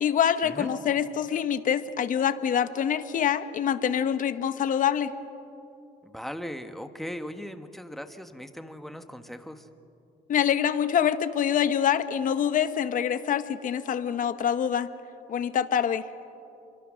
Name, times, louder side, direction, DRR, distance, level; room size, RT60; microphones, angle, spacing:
voice 1, 0.0-5.1 10.3-14.9 15.3-16.0, left 9 dB, 50° left, 11 dB, 1.2 m, -25 dB
voice 2, 6.0-9.7, equal, ahead, 7 dB, 1.4 m, -38 dB
28.0 x 24.0 x 6.4 m, 2.8 s
cardioid pair, 110°, 17 cm